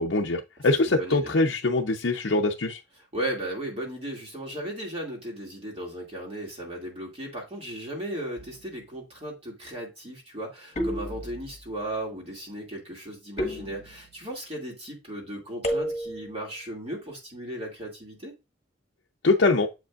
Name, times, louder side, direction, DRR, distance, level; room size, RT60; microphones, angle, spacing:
voice 1, 0.0-2.8 19.2-19.7, left 2 dB, 70° left, 0.7 m, -23 dB
voice 2, 0.9-1.3 3.1-18.4, right 1 dB, 30° right, 2.4 m, -36 dB
sound 1, 8.4-8.9 10.8-11.7 13.4-14.3 15.6-16.4, equal, 35° left, 1.4 m, -32 dB
7.7 x 5.2 x 2.4 m
head